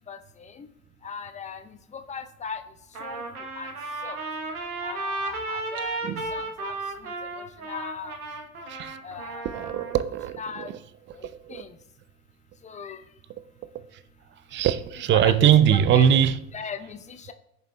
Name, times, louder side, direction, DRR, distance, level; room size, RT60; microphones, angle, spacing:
voice 1, 0.1-0.7 1.0-1.6 1.9-2.6 3.0-3.2 3.6-3.7 4.0-4.2 4.8-6.0 6.3-6.7 7.7-8.2 9.0-9.5 10.4-10.7 11.1-11.7 12.6-13.0 15.1-16.1 16.5-17.3, left 6 dB, 15° left, 0.6 m, -38 dB
Trumpet, 3.0-10.0, right 3 dB, 90° right, 1.2 m, -34 dB
voice 2, 9.5-10.4 11.5-11.6 14.5-16.4, right 9 dB, 30° right, 0.4 m, -20 dB
14.0 x 6.9 x 2.2 m
figure-of-eight pair, 75°, 42 cm